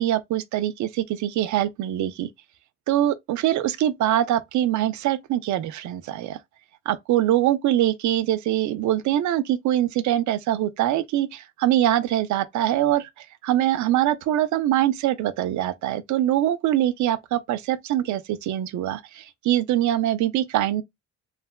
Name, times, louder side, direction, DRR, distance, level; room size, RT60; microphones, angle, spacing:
voice 1, 0.0-2.3 2.9-6.4 6.9-20.8, right 12 dB, 70° right, 0.5 m, -23 dB
3.2 x 2.1 x 2.2 m
cardioid pair, 90°, 30 cm